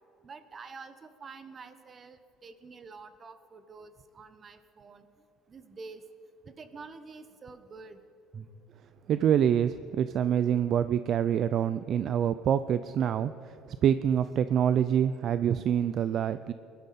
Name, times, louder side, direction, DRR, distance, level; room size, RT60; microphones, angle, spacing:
voice 1, 0.2-5.1 5.5-6.1 6.4-8.0 8.3-8.5 9.9-10.0 13.0-13.2, right 4 dB, 30° right, 11 dB, 1.0 m, -47 dB
voice 2, 9.1-13.3 13.8-16.5, right 9 dB, 50° right, 13 dB, 0.4 m, -26 dB
21.5 x 12.0 x 4.3 m, 2.9 s
cardioid pair, 125°, 0 cm